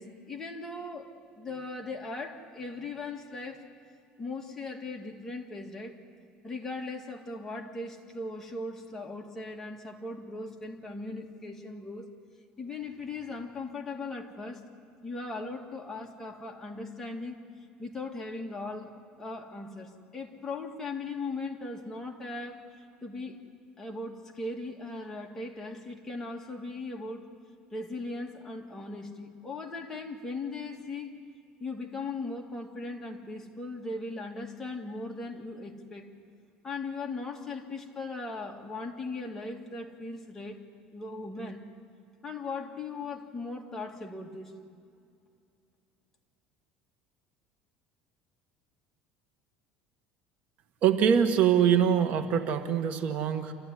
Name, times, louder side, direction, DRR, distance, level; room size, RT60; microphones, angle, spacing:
voice 1, 0.0-3.7 4.2-6.0 6.4-12.1 12.6-14.6 15.0-17.4 17.8-18.9 19.2-23.4 23.8-27.3 27.7-31.1 31.6-36.1 36.6-40.6 40.9-41.6 42.2-44.5, left 3 dB, 15° left, 1 dB, 2.2 m, -38 dB
voice 2, 50.8-53.5, right 8 dB, 55° right, 8 dB, 1.4 m, -24 dB
28.0 x 14.5 x 9.9 m, 2.5 s
cardioid pair, 140°, 3 cm